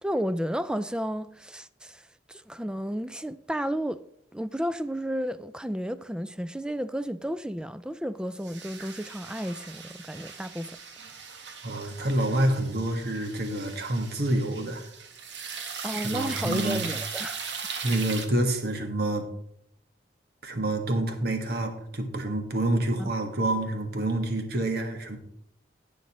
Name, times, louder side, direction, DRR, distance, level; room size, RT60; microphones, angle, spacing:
voice 1, 0.0-4.0 4.3-10.7 15.8-17.4 23.0-23.1, equal, 5° right, 0.3 m, -32 dB
sound 1, 8.4-18.3, right 6 dB, 85° right, 1.3 m, -39 dB
voice 2, 11.6-14.8 15.4-16.9 17.8-19.3 20.4-25.2, right 1 dB, 60° right, 1.5 m, -28 dB
18.5 x 6.5 x 3.1 m
head